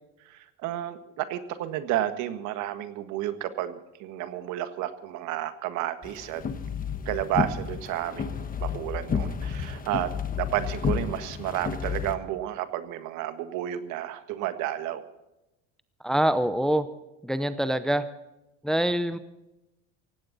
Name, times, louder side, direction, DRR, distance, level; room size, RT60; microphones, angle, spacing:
voice 1, 0.2-6.4 7.0-10.1 10.4-15.1, right 13 dB, 65° right, 10 dB, 1.6 m, -31 dB
sound 1, 6.0-12.2, left 7 dB, 25° left, 1.3 m, -31 dB
voice 2, 16.0-16.9 17.2-18.0 18.6-19.2, right 1 dB, ahead, 11 dB, 0.7 m, -25 dB
18.5 x 16.0 x 4.1 m, 0.94 s
cardioid pair, 125°, 32 cm